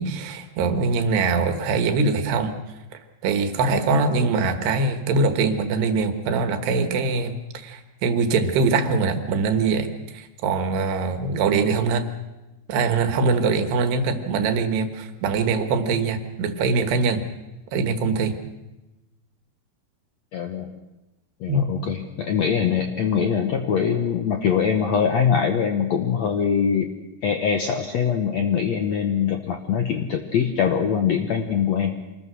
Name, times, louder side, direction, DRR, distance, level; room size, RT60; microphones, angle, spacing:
voice 1, 0.0-2.5 3.2-12.1 12.7-17.2 17.7-18.3 21.5-21.7, right 4 dB, 90° right, 7 dB, 3.7 m, -23 dB
voice 2, 20.3-20.7 21.4-26.9 27.2-31.9, left 7 dB, 75° left, 5 dB, 1.6 m, -23 dB
25.5 x 20.0 x 6.3 m, 1.0 s
omnidirectional pair, 4.6 m